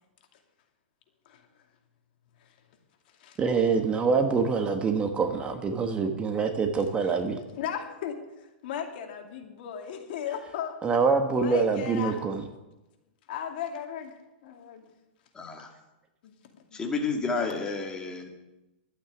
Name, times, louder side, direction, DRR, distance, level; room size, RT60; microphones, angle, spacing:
voice 1, 3.4-7.4 10.8-12.4, right 5 dB, 20° right, 6 dB, 1.3 m, -25 dB
voice 2, 7.6-10.7 11.4-12.2 13.3-14.2 14.4-14.9 16.2-16.8, left 9 dB, 60° left, 4 dB, 2.5 m, -36 dB
voice 3, 15.3-15.7 16.7-18.3, left 4 dB, 15° left, 2 dB, 2.2 m, -30 dB
12.0 x 9.0 x 9.5 m, 1.0 s
hypercardioid pair, 140°, 6 cm